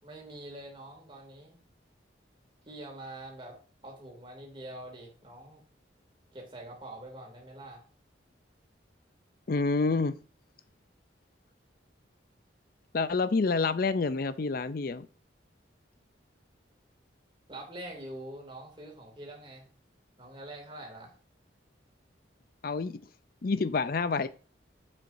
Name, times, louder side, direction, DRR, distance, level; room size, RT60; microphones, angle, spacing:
voice 1, 0.0-1.6 2.7-3.6 3.8-5.6 6.3-7.9 17.5-19.7 20.2-21.1, right 1 dB, 25° right, 2.5 m, -45 dB
voice 2, 9.5-10.1 12.9-15.1 22.6-23.0 23.4-24.3, left 4 dB, 50° left, 0.5 m, -28 dB
7.7 x 7.5 x 2.6 m
head